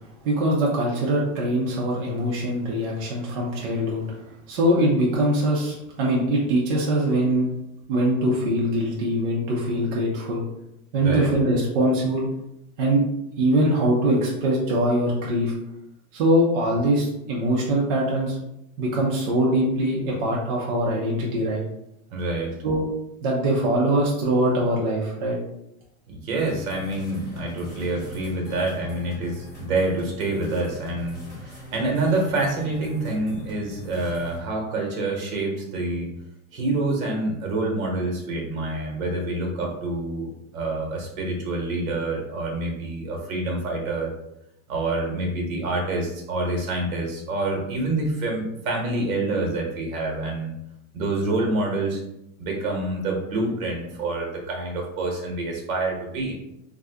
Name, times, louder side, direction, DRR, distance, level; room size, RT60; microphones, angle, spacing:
voice 1, 0.2-4.0 4.5-7.5 7.9-10.4 10.9-12.3 12.8-13.0 13.4-15.5 16.1-18.4 18.8-21.6 22.6-22.8 23.2-25.4, right 1 dB, 40° right, -4 dB, 0.5 m, -22 dB
voice 2, 22.1-22.5 26.1-36.1 36.5-44.1 44.7-50.5 50.9-52.0 52.4-56.3, right 2 dB, 70° right, 1 dB, 1.1 m, -27 dB
sound 1, 26.4-34.4, equal, ahead, 1.5 m, -42 dB
2.6 x 2.4 x 3.4 m, 0.84 s
supercardioid pair, 180°, 43 cm